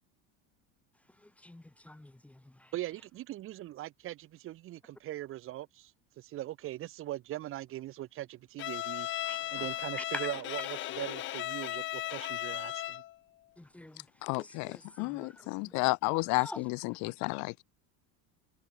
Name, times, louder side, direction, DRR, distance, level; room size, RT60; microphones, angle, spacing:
voice 1, 1.2-2.7 9.2-9.7 9.9-10.3 10.6-10.7 11.6-11.7 13.6-14.1 14.4-15.7 16.1-16.6 17.0-17.1, left 1 dB, 5° left, 1.4 m, -46 dB
voice 2, 2.7-5.9 6.2-9.1 9.5-13.0, right 15 dB, 40° right, 2.6 m, -40 dB
Bowed string instrument, 8.6-13.2, left 14 dB, 35° left, 1.3 m, -36 dB
voice 3, 14.2-17.6, left 30 dB, 60° left, 1.5 m, -32 dB
cardioid pair, 160°, 32 cm